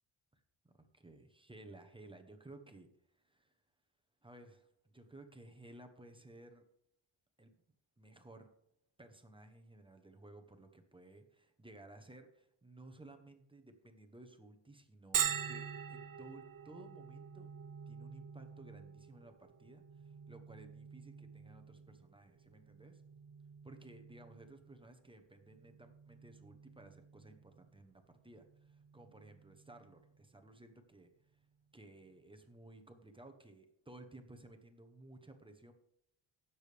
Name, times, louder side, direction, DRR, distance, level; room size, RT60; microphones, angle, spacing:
voice 1, 1.0-3.5 4.2-6.6 7.4-7.5 8.0-8.5 9.0-17.5 17.9-23.0 23.6-31.1 31.7-35.7, right 2 dB, 10° right, 5 dB, 0.9 m, -57 dB
Bell, 15.1-30.6, right 8 dB, 45° right, 0.7 m, -45 dB
17.0 x 7.0 x 3.4 m, 0.76 s
wide cardioid pair, 155°, 49 cm